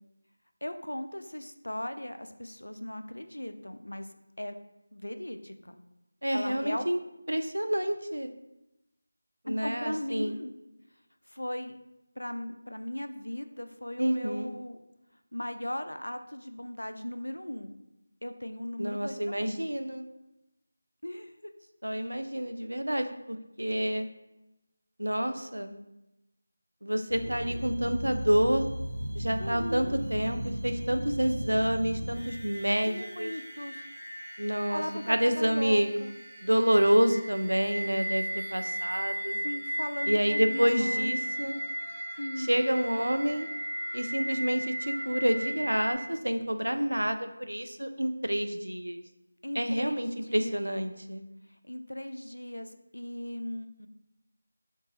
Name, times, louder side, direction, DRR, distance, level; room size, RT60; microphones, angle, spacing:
voice 1, 0.6-4.1 4.4-4.6 4.9-5.8 6.3-6.9 9.5-10.5 11.3-11.8 12.2-14.8 15.3-17.8 18.2-19.5 21.0-21.5 29.4-30.0 32.9-33.8 34.7-36.2 39.4-41.3 42.2-42.6 49.4-50.6 51.6-53.9, left 1 dB, 85° left, 8 dB, 0.3 m, -37 dB
voice 2, 6.2-7.0 7.3-8.3 9.4-10.4 14.0-14.5 18.8-20.1 21.8-24.1 25.0-25.8 26.8-28.7 29.1-33.3 34.4-35.9 36.4-39.4 40.1-41.6 42.4-43.5 43.9-49.0 49.6-51.2, equal, 85° right, 8 dB, 0.3 m, -28 dB
sound 1, 27.1-45.9, equal, 20° left, 1.0 m, -36 dB
3.4 x 2.8 x 2.8 m, 0.93 s
figure-of-eight pair, 165°, 0 cm